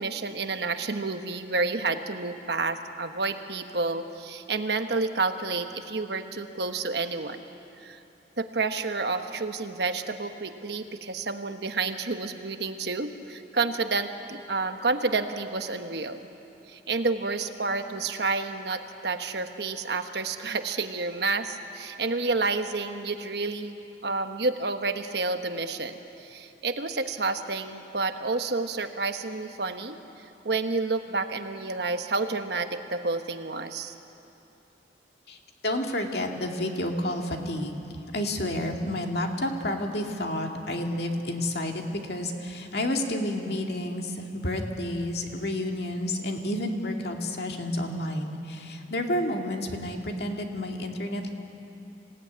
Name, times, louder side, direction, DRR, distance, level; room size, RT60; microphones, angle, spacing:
voice 1, 0.0-7.4 7.8-8.0 8.4-16.2 16.7-23.8 24.0-30.0 30.4-33.9, right 3 dB, 60° right, 7 dB, 1.2 m, -29 dB
voice 2, 35.6-51.3, left 1 dB, 60° left, 2 dB, 2.2 m, -30 dB
26.0 x 17.0 x 9.5 m, 2.8 s
head